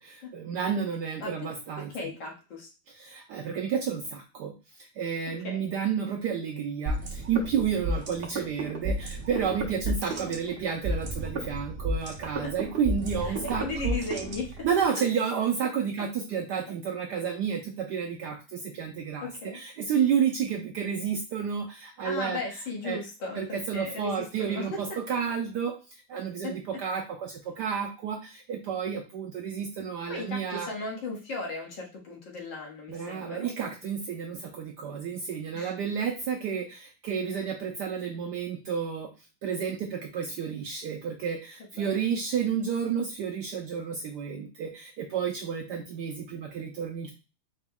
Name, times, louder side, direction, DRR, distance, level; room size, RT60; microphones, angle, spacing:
voice 1, 0.0-1.9 3.0-4.5 5.0-13.9 14.6-18.4 18.7-22.4 22.8-23.0 23.3-25.7 26.1-30.7 32.9-39.1 39.4-47.1, right 7 dB, 75° right, 2 dB, 0.9 m, -31 dB
voice 2, 1.8-2.7 5.4-5.7 12.4-12.5 13.2-14.7 19.2-19.6 22.0-25.2 26.4-26.6 30.1-33.5 35.5-35.7 41.8-42.1, left 2 dB, 65° left, -1 dB, 1.8 m, -36 dB
sound 1, 6.9-14.8, right 1 dB, 50° right, 0.6 m, -32 dB
5.0 x 2.2 x 3.5 m, 0.31 s
omnidirectional pair, 2.3 m